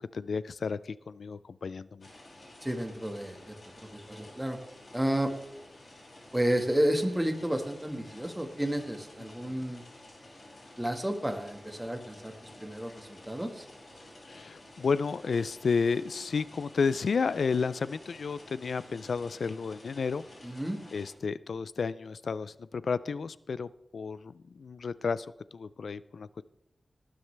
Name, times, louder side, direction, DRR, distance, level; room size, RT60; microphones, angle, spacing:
voice 1, 0.1-2.1 9.5-9.6 14.3-20.2 20.9-25.3 25.5-26.4, left 5 dB, 90° left, 17 dB, 0.3 m, -32 dB
sound 1, 2.0-21.1, left 1 dB, 55° left, 5.7 m, -52 dB
voice 2, 2.6-3.6 3.9-4.6 4.9-5.3 6.3-9.8 10.8-13.7 20.4-20.8, right 1 dB, 10° right, 5 dB, 1.6 m, -31 dB
19.0 x 9.7 x 3.4 m, 0.81 s
wide cardioid pair, 85°, 0 cm